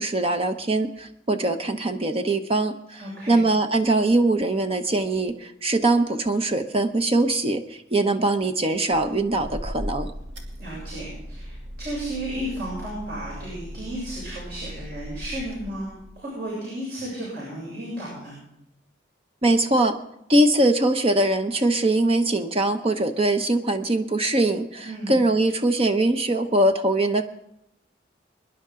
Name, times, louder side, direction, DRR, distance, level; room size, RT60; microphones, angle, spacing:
voice 1, 0.0-10.1 19.4-19.9 20.3-27.2, right 2 dB, 30° right, 8 dB, 0.8 m, -22 dB
voice 2, 3.0-3.4 10.6-18.3 24.8-25.2, right 1 dB, 60° right, -6 dB, 6.8 m, -33 dB
sound 1, 8.8-16.2, equal, 75° right, 2.6 m, -38 dB
23.5 x 11.0 x 3.7 m, 0.80 s
head